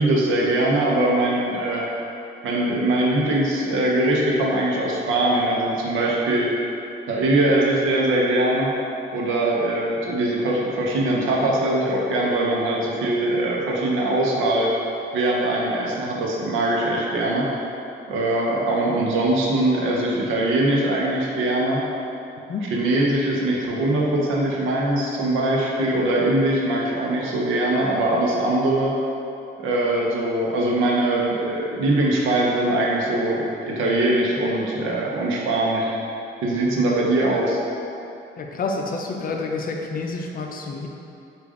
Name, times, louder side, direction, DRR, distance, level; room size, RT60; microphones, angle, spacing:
voice 1, 0.0-1.9 2.4-6.5 7.1-8.7 9.1-14.7 15.1-17.5 18.1-21.8 22.7-28.9 29.6-35.9 36.4-37.6, right 1 dB, 90° right, -3 dB, 0.7 m, -22 dB
voice 2, 38.4-40.9, left 3 dB, 45° left, 2 dB, 0.5 m, -28 dB
4.9 x 2.5 x 3.6 m, 2.8 s
cardioid pair, 90°, 20 cm